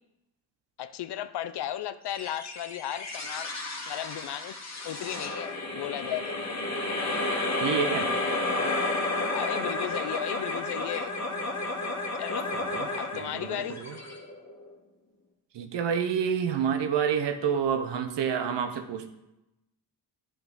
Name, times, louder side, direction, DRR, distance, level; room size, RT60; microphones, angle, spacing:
voice 1, 0.8-3.5 3.9-4.5 4.8-6.4 9.3-11.2 12.2-12.5 12.9-13.8, left 11 dB, 70° left, 0.6 m, -35 dB
sound 1, 2.1-14.7, left 2 dB, 40° left, 1.6 m, -32 dB
voice 2, 7.6-8.1 12.8-12.9 13.1-13.9 15.5-19.1, right 7 dB, 80° right, 0.9 m, -28 dB
10.5 x 3.9 x 3.9 m
cardioid pair, 90°, 42 cm